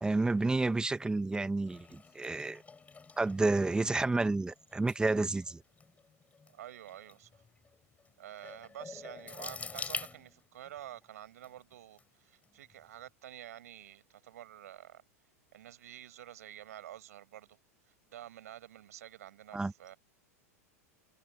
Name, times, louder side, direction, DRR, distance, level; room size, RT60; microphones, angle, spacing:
voice 1, 0.0-2.6 3.2-5.6 19.5-19.7, right 3 dB, 10° right, 1.2 m, -30 dB
sound 1, 1.7-10.8 11.4-12.0 12.4-12.7, left 4 dB, 15° left, 6.1 m, -46 dB
voice 2, 6.5-7.4 8.2-15.0 15.5-17.6 18.1-20.0, right 12 dB, 75° right, 5.9 m, -49 dB
hypercardioid pair, 100°, 8 cm